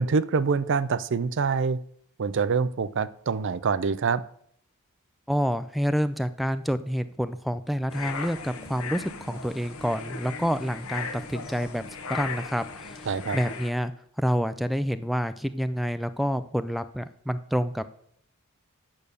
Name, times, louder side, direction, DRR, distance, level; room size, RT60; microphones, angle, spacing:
voice 1, 0.0-1.8 2.2-4.2 13.1-13.4, right 5 dB, 55° right, 15 dB, 0.5 m, -25 dB
voice 2, 5.3-11.8 12.1-13.1 13.3-13.9 14.2-17.9, equal, ahead, 11 dB, 0.3 m, -28 dB
sound 1, 7.9-13.7, left 4 dB, 70° left, 1.1 m, -37 dB
8.8 x 6.5 x 6.8 m, 0.66 s
head